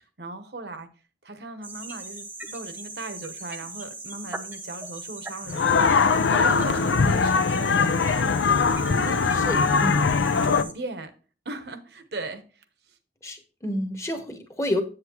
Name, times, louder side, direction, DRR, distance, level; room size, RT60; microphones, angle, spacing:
voice 1, 0.2-0.9 1.2-8.2 8.9-9.8 10.4-11.1 11.4-12.6, right 2 dB, 65° right, 1.0 m, -37 dB
sound 1, 1.6-10.7, right 2 dB, 10° right, 0.7 m, -39 dB
sound 2, 5.5-10.6, left 5 dB, 90° left, 0.6 m, -21 dB
voice 2, 13.2-14.8, left 1 dB, 15° left, 1.0 m, -29 dB
7.9 x 7.8 x 3.0 m
head